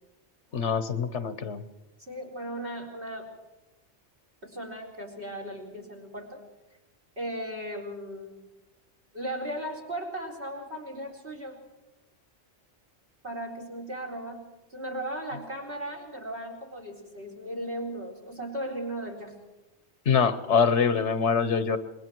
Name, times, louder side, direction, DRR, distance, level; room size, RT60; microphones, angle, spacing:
voice 1, 0.5-1.6 20.1-21.8, left 6 dB, 80° left, 12 dB, 1.4 m, -24 dB
voice 2, 2.1-3.3 4.4-6.4 7.2-8.4 9.1-11.6 13.2-19.4, right 1 dB, 70° right, 3 dB, 4.5 m, -37 dB
26.5 x 21.5 x 4.6 m, 1.0 s
omnidirectional pair, 1.2 m